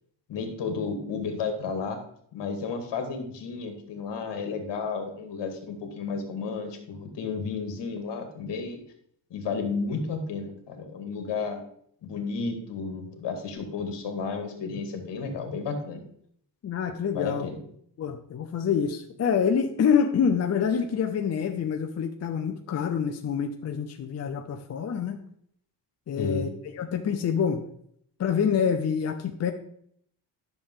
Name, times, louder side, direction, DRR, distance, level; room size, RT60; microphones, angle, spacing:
voice 1, 0.3-2.0 2.3-8.8 9.3-11.6 12.0-16.0 17.1-17.6 26.2-26.5, left 4 dB, 70° left, 4 dB, 2.0 m, -32 dB
voice 2, 16.6-17.5 18.0-25.2 26.1-26.5 26.8-27.6 28.2-29.5, left 7 dB, 35° left, 5 dB, 0.6 m, -26 dB
10.5 x 6.6 x 3.7 m, 0.67 s
cardioid pair, 155°, 44 cm